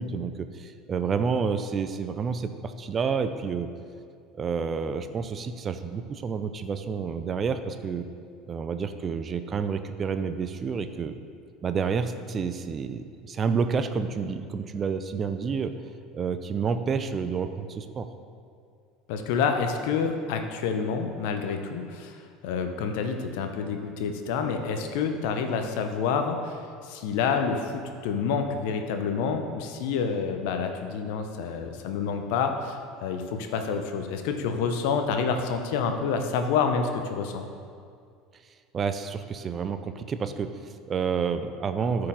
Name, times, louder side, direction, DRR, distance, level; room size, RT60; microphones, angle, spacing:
voice 1, 0.0-3.7 4.3-8.1 8.5-11.2 11.6-15.8 16.1-18.1 38.7-42.1, right 5 dB, 35° right, 9 dB, 0.6 m, -29 dB
voice 2, 19.1-37.5, left 5 dB, 65° left, 6 dB, 0.8 m, -28 dB
13.5 x 4.8 x 3.7 m, 2.2 s
hypercardioid pair, 70°, 0 cm